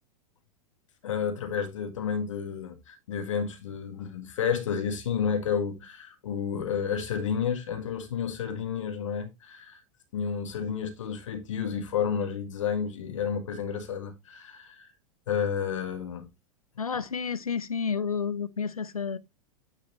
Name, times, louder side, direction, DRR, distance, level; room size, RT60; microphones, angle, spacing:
voice 1, 1.0-9.8 10.1-14.9 15.3-16.3, left 7 dB, 60° left, 1.8 m, -31 dB
voice 2, 16.8-19.2, left 6 dB, 80° left, 0.6 m, -30 dB
9.5 x 5.0 x 3.1 m
figure-of-eight pair, 95°, 18 cm